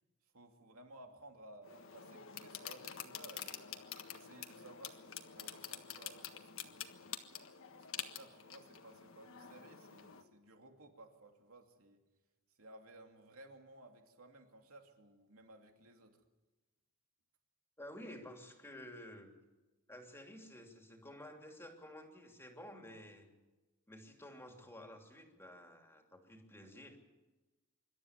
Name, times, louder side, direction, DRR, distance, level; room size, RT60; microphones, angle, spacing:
voice 1, 0.3-3.7 4.1-5.0 5.3-6.9 7.7-12.0 12.6-16.2, right 2 dB, 75° right, 3 dB, 2.8 m, -58 dB
sound 1, 1.6-10.2, left 9 dB, 65° left, 1.6 m, -48 dB
voice 2, 17.8-19.3 19.9-23.3 23.9-27.0, left 1 dB, 10° left, 3 dB, 2.9 m, -52 dB
26.0 x 13.0 x 9.7 m, 1.1 s
head